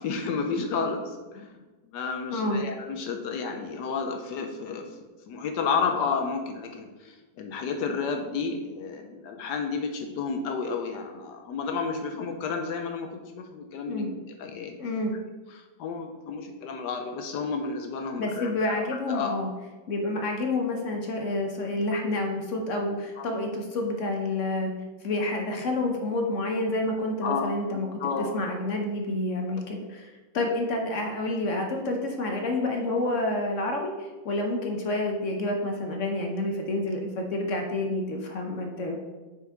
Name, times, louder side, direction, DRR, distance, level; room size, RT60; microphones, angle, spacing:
voice 1, 0.0-1.5 1.9-4.9 5.3-14.1 14.4-14.8 15.5-18.8 19.1-19.3 23.2-23.3 27.2-27.5 28.0-28.3, left 5 dB, 70° left, 5 dB, 1.2 m, -31 dB
voice 2, 2.3-2.6 13.9-14.1 14.8-15.1 18.2-19.5 19.9-24.7 25.0-27.9 28.2-39.0, left 2 dB, 55° left, 2 dB, 0.9 m, -29 dB
6.8 x 4.6 x 3.5 m, 1.2 s
omnidirectional pair, 2.0 m